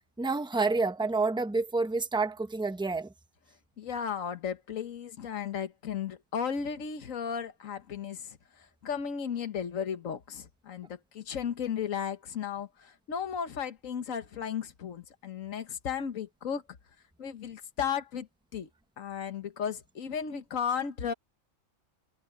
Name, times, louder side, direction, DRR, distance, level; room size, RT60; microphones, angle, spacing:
voice 1, 0.2-3.1, right 3 dB, 5° right, 0.7 m, -28 dB
voice 2, 3.8-16.6 17.2-18.7 19.0-21.1, left 7 dB, 85° left, 1.6 m, -35 dB
omnidirectional pair, 1.3 m